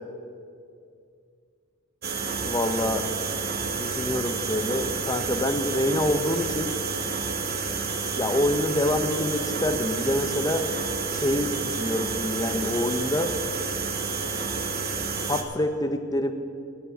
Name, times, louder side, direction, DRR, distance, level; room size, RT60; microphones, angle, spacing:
sound 1, 2.0-15.4, right 4 dB, 50° right, 1.1 m, -30 dB
voice 1, 2.4-3.1 3.7-6.7 8.1-10.7 11.1-13.3 14.3-14.4 15.3-16.3, left 1 dB, 20° left, 7 dB, 0.7 m, -26 dB
17.0 x 5.9 x 8.4 m, 2.4 s
head